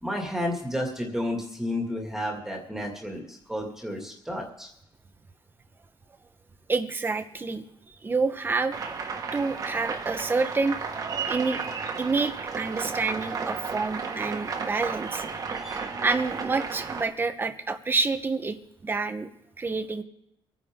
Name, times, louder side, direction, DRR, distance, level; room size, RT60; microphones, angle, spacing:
voice 1, 0.0-4.7 15.5-15.8, left 1 dB, 5° right, 1 dB, 2.2 m, -32 dB
voice 2, 6.7-7.6 8.0-8.7 9.3-10.8 11.3-11.6 12.0-15.2 16.0-18.6 18.8-19.3 19.6-20.0, right 4 dB, 20° right, 9 dB, 1.0 m, -28 dB
sound 1, 8.7-17.0, right 5 dB, 40° right, 1.6 m, -33 dB
25.0 x 10.0 x 3.7 m, 0.78 s
cardioid pair, 155°, 10 cm